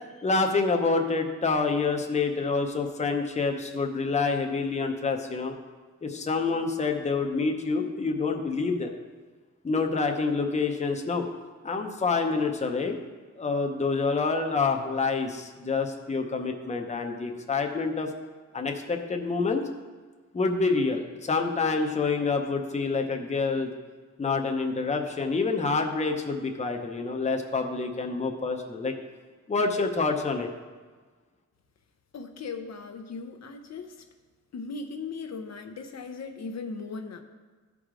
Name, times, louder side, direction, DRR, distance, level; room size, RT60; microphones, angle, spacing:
voice 1, 0.2-5.5 6.0-8.9 9.6-11.3 11.6-13.0 13.4-18.1 18.5-19.6 20.3-23.7 24.2-28.9 29.5-30.5, left 4 dB, 25° left, 3 dB, 0.7 m, -27 dB
voice 2, 32.1-34.0 34.5-37.2, left 4 dB, 65° left, 5 dB, 0.6 m, -38 dB
14.0 x 4.8 x 3.7 m, 1.4 s
wide cardioid pair, 145°, 29 cm